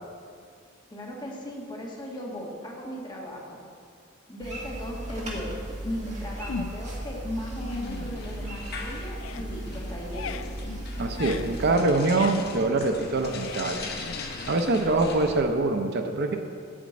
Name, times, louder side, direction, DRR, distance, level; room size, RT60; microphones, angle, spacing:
voice 1, 0.9-3.6 4.3-10.4, equal, 20° left, -3 dB, 1.6 m, -37 dB
sound 1, 4.4-11.7, right 1 dB, 35° right, 1.8 m, -36 dB
sound 2, 6.5-7.0 7.4-8.8 9.1-15.6, left 5 dB, 75° left, 0.4 m, -40 dB
sound 3, 7.5-15.4, left 3 dB, 55° left, 1.0 m, -40 dB
voice 2, 11.0-14.1 14.5-16.4, right 2 dB, 55° right, 5 dB, 0.6 m, -24 dB
8.7 x 5.1 x 7.6 m, 2.2 s
head